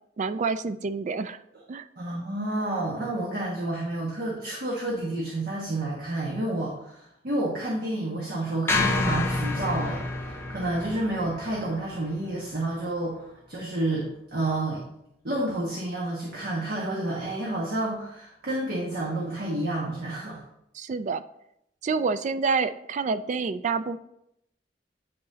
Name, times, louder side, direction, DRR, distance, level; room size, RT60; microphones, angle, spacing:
voice 1, 0.2-1.4 1.7-1.8 20.7-21.2 21.8-24.0, right 4 dB, 45° right, 13 dB, 0.3 m, -28 dB
voice 2, 2.0-14.8 15.2-20.4, right 1 dB, 60° right, -3 dB, 1.3 m, -30 dB
sound 1, 8.7-13.0, left 2 dB, 15° left, 0.6 m, -29 dB
8.8 x 5.5 x 2.8 m, 0.80 s
head